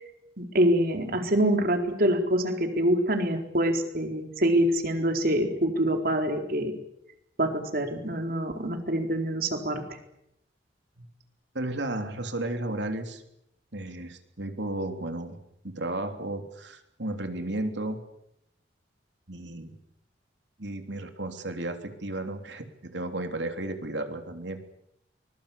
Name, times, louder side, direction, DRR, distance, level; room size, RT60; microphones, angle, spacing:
voice 1, 0.4-6.7 7.4-9.8, right 1 dB, 55° right, 5 dB, 4.2 m, -25 dB
voice 2, 11.5-13.2 13.7-15.4 15.6-18.0 19.3-19.7 20.6-24.6, right 1 dB, 75° right, 6 dB, 3.3 m, -33 dB
24.0 x 21.0 x 8.5 m, 0.79 s
head